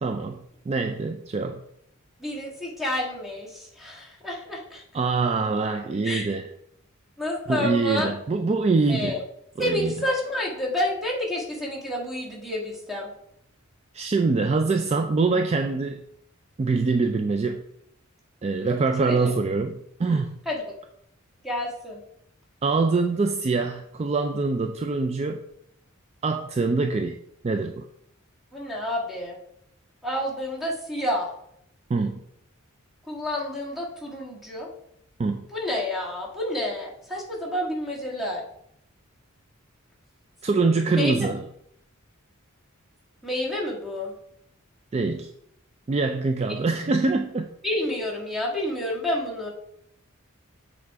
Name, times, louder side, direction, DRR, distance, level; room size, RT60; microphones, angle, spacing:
voice 1, 0.0-1.6 4.9-6.4 7.5-9.2 9.6-9.9 13.9-16.0 16.6-17.6 18.4-20.3 22.6-25.4 26.2-27.2 27.4-27.8 31.9-32.2 35.2-35.4 40.4-41.4 44.9-45.3 45.9-47.5, right 3 dB, 30° right, 6 dB, 0.3 m, -24 dB
voice 2, 2.2-4.8 6.0-6.3 7.2-8.1 8.9-9.2 9.6-13.1 19.0-19.3 20.4-20.7 21.4-22.0 28.5-29.4 30.0-31.3 33.0-34.7 35.5-38.4 40.9-41.3 43.2-44.1 46.5-46.6 47.6-49.5, left 1 dB, ahead, -3 dB, 1.7 m, -29 dB
7.2 x 3.6 x 4.6 m, 0.74 s
head